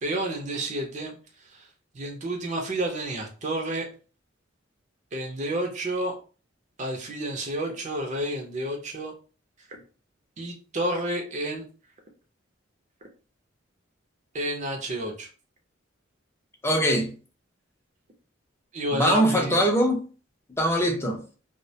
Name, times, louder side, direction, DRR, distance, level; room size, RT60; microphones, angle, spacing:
voice 1, 0.0-1.2 1.5-1.7 1.9-3.8 5.1-6.1 6.8-9.1 9.7-9.8 10.4-11.6 14.3-15.3 18.7-19.6, right 1 dB, 40° right, 0.5 m, -30 dB
voice 2, 16.6-17.1 18.9-20.0 20.6-21.2, equal, 15° left, 0.4 m, -22 dB
2.3 x 2.1 x 2.7 m
head